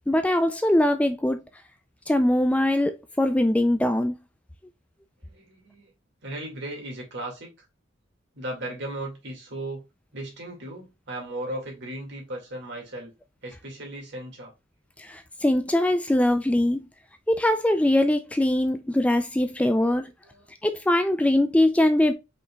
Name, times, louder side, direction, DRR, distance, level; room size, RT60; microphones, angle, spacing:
voice 1, 0.1-1.4 2.1-4.2 15.0-16.9 17.3-20.1 20.6-22.1, left 1 dB, 5° left, 0.3 m, -22 dB
voice 2, 5.2-5.9 6.2-7.5 8.3-9.8 10.1-13.1 13.4-14.5 19.8-19.9 20.2-20.5, right 1 dB, 60° right, 2.0 m, -36 dB
5.2 x 4.0 x 2.3 m
head